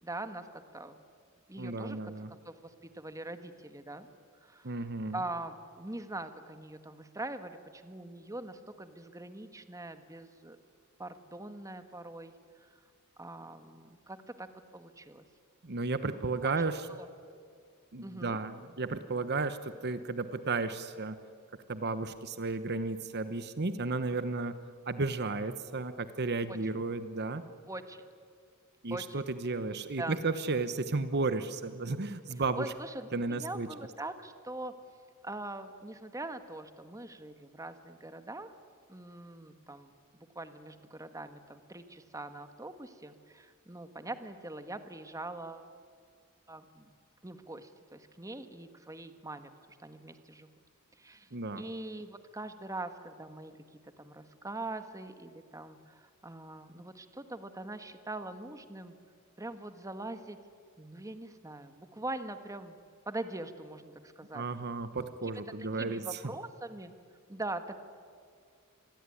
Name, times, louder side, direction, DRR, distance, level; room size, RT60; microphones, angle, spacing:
voice 1, 0.0-1.0 1.5-4.1 4.4-4.7 5.1-10.6 11.0-12.3 12.6-12.7 13.2-14.5 14.7-15.2 16.4-16.5 17.0-17.1 18.0-18.4 26.5-26.6 27.6-28.0 28.9-29.3 30.0-30.2 32.6-34.7 35.2-38.5 38.9-45.7 46.5-46.9 47.2-49.5 49.8-50.5 51.0-51.3 51.6-53.5 54.0-58.9 59.4-60.4 60.8-62.8 63.1-64.5 65.8-66.9 67.3-67.8, right 2 dB, 15° right, 9 dB, 1.5 m, -42 dB
voice 2, 1.6-2.3 4.6-5.2 15.6-16.9 17.9-21.2 21.7-27.4 28.8-32.7 33.1-33.7 51.3-51.6 64.3-66.2, right 3 dB, 50° right, 11 dB, 1.0 m, -33 dB
27.0 x 21.5 x 9.9 m, 2.2 s
head